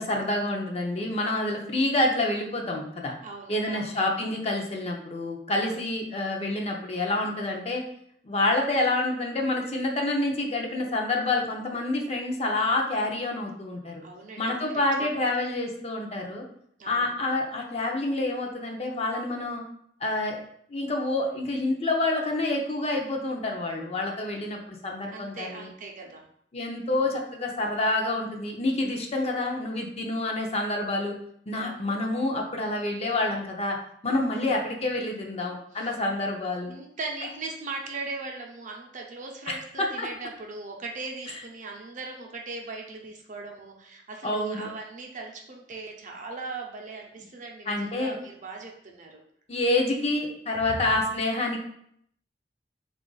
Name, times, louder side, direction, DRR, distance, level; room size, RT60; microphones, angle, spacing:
voice 1, 0.0-3.1 3.5-7.8 8.2-14.0 14.4-16.4 16.9-19.6 20.0-20.4 20.7-25.7 26.5-31.1 31.5-33.8 34.0-36.7 39.8-40.1 44.2-44.7 47.7-48.2 49.5-51.6, left 2 dB, 35° left, 1 dB, 0.6 m, -28 dB
voice 2, 3.2-4.0 5.5-5.8 14.0-15.3 16.8-17.1 24.3-24.4 25.1-26.3 31.5-31.9 34.3-34.5 35.7-35.9 36.7-49.2 50.1-50.2 50.5-50.9, right 3 dB, 45° right, 1 dB, 0.6 m, -39 dB
3.6 x 2.4 x 3.8 m, 0.69 s
head